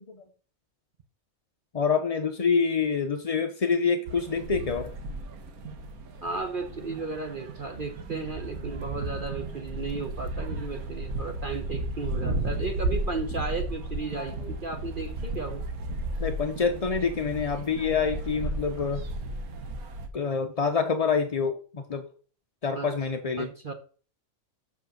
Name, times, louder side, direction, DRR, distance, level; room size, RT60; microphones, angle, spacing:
voice 1, 1.7-4.9 14.2-14.5 16.2-19.0 20.1-22.1 22.6-23.5, left 5 dB, 45° left, 6 dB, 0.5 m, -27 dB
sound 1, 4.1-20.1, right 1 dB, 85° right, 1.5 m, -34 dB
voice 2, 6.2-15.7 22.7-22.9 23.4-23.7, right 4 dB, 45° right, 5 dB, 0.9 m, -34 dB
6.6 x 5.3 x 6.2 m, 0.40 s
omnidirectional pair, 1.5 m